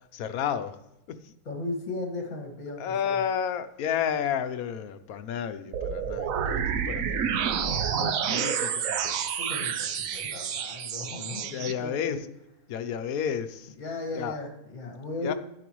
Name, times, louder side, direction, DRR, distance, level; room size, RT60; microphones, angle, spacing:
voice 1, 0.1-0.8 1.1-1.2 2.8-7.2 7.9-9.2 11.5-12.2 12.7-13.7 14.2-14.4 15.2-15.3, left 8 dB, 75° left, 10 dB, 1.1 m, -31 dB
voice 2, 1.4-3.2 9.4-12.2 13.8-15.3, left 2 dB, 55° left, 2 dB, 2.1 m, -36 dB
sound 1, 5.7-11.7, right 7 dB, 70° right, 1.1 m, -29 dB
12.0 x 9.1 x 3.1 m, 0.87 s
omnidirectional pair, 1.5 m